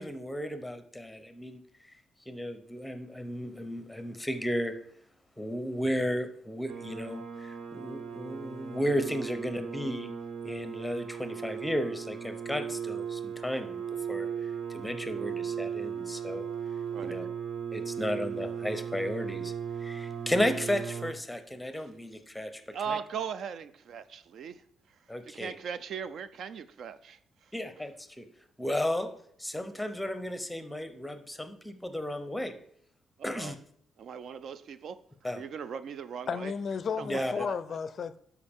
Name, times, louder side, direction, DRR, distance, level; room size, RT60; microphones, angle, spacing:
voice 1, 0.0-1.6 2.3-4.7 5.4-10.1 10.4-13.8 14.1-14.3 14.7-16.5 17.0-17.2 17.7-19.5 19.8-23.0 25.1-25.6 27.5-28.3 28.6-29.1 29.4-32.6 33.2-33.6 35.2-35.5 37.0-37.3, equal, 5° left, 0.7 m, -34 dB
sound 1, 6.7-21.1, right 7 dB, 80° right, 1.2 m, -37 dB
voice 2, 22.7-24.6 25.3-27.2 33.2-33.5 34.0-35.0 35.3-36.5 37.0-37.6, right 7 dB, 60° right, 0.4 m, -39 dB
voice 3, 36.3-38.2, left 6 dB, 45° left, 0.4 m, -33 dB
12.0 x 4.8 x 3.6 m
cardioid pair, 140°, 0 cm